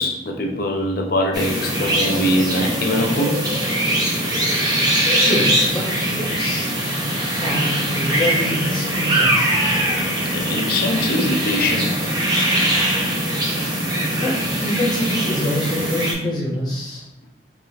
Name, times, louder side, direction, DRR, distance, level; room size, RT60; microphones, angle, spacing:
voice 1, 0.0-3.4 10.2-11.9, left 1 dB, 55° left, 1 dB, 0.6 m, -22 dB
sound 1, 1.3-16.1, right 1 dB, 20° right, 0.6 m, -21 dB
voice 2, 5.2-6.8 7.2-9.5 14.2-17.1, left 1 dB, 25° left, -6 dB, 1.0 m, -25 dB
4.6 x 2.8 x 2.4 m, 0.86 s
head